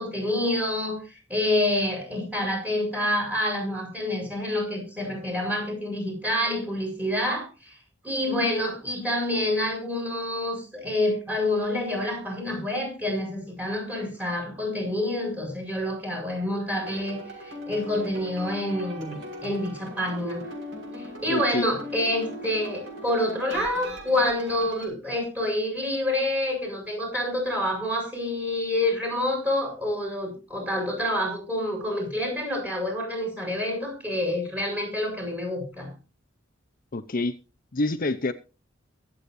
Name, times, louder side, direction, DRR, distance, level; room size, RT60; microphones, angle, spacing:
voice 1, 0.0-7.8 8.0-20.4 20.9-35.9, left 1 dB, 10° right, 7.5 m, -27 dB
sound 1, 16.8-24.9, equal, 70° right, 6.3 m, -39 dB
voice 2, 21.3-21.7 36.9-37.4 37.7-38.3, left 2 dB, 45° left, 0.7 m, -27 dB
23.0 x 8.5 x 2.7 m
head